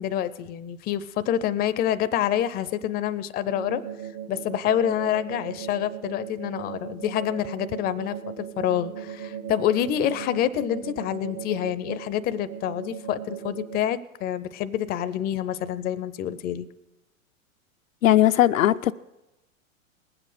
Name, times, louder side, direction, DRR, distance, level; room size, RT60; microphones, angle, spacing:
voice 1, 0.0-3.8 4.3-16.7, left 11 dB, 25° left, 0.5 m, -27 dB
sound 1, 3.5-13.8, right 9 dB, 60° right, 1.8 m, -38 dB
voice 2, 18.0-18.9, left 13 dB, 75° left, 0.6 m, -18 dB
19.5 x 7.9 x 6.5 m
figure-of-eight pair, 100°, 41 cm